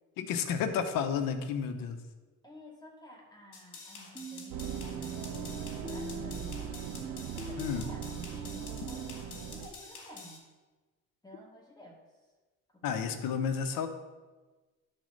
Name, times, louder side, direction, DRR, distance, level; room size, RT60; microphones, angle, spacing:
voice 1, 0.2-2.0 7.6-7.8 12.8-13.9, left 7 dB, 80° left, 9 dB, 1.0 m, -31 dB
voice 2, 2.4-6.8 7.3-10.5 11.2-12.0 12.7-13.6, equal, 10° left, -2 dB, 2.2 m, -52 dB
sound 1, 3.5-10.4, left 4 dB, 60° left, 2.3 m, -48 dB
sound 2, 4.2-9.2, right 2 dB, 5° right, 1.1 m, -44 dB
sound 3, 4.5-9.7, right 8 dB, 90° right, 0.7 m, -40 dB
10.5 x 4.3 x 6.5 m, 1.3 s
cardioid pair, 85°, 33 cm